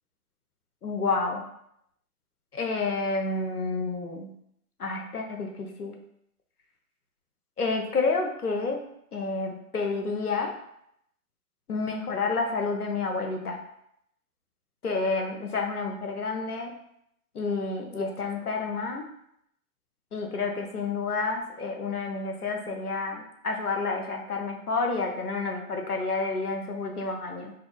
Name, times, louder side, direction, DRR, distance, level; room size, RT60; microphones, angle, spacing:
voice 1, 0.8-1.4 2.5-4.3 4.8-6.0 7.6-8.8 9.1-10.5 11.7-13.6 14.8-16.7 17.3-19.0 20.1-27.5, left 3 dB, 85° left, 3 dB, 0.8 m, -29 dB
3.3 x 2.2 x 3.4 m, 0.74 s
figure-of-eight pair, 115°, 44 cm